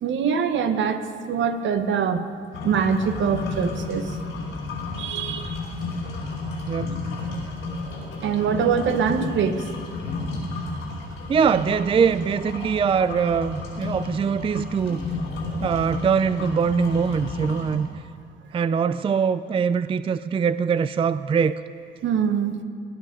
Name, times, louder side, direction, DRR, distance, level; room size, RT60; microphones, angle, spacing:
voice 1, 0.0-2.3 2.6-4.1 5.0-5.6 8.2-9.6 22.0-22.6, right 7 dB, 70° right, 8 dB, 1.1 m, -23 dB
sound 1, 2.5-17.8, left 3 dB, 80° left, 4.6 m, -32 dB
voice 2, 6.7-7.0 11.3-15.1 15.6-17.9 18.5-21.6, right 6 dB, 30° right, 14 dB, 0.3 m, -22 dB
19.0 x 10.5 x 5.3 m, 2.1 s
cardioid pair, 90°, 20 cm